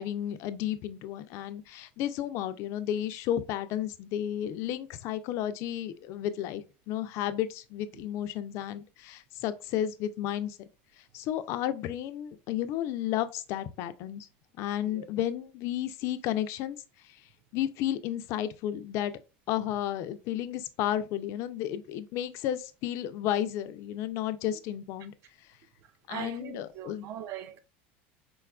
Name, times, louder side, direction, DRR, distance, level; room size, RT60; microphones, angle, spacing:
voice 1, 0.0-10.6 11.1-14.3 14.6-16.8 17.5-19.1 19.5-25.1 26.1-27.1, left 11 dB, 55° left, 0.3 m, -32 dB
voice 2, 26.1-27.6, right 10 dB, 50° right, 0.4 m, -40 dB
4.1 x 2.3 x 2.2 m
supercardioid pair, 125°, 6 cm